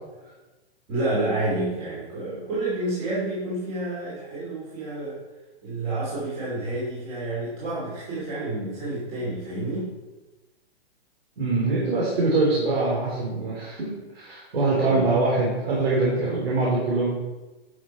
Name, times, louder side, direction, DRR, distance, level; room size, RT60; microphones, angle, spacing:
voice 1, 0.9-5.2 5.6-9.9 14.7-15.1, right 2 dB, 25° right, -8 dB, 2.8 m, -29 dB
voice 2, 11.4-17.1, right 3 dB, 65° right, -5 dB, 3.8 m, -23 dB
11.5 x 6.1 x 4.5 m, 1.2 s
hypercardioid pair, 175°, 32 cm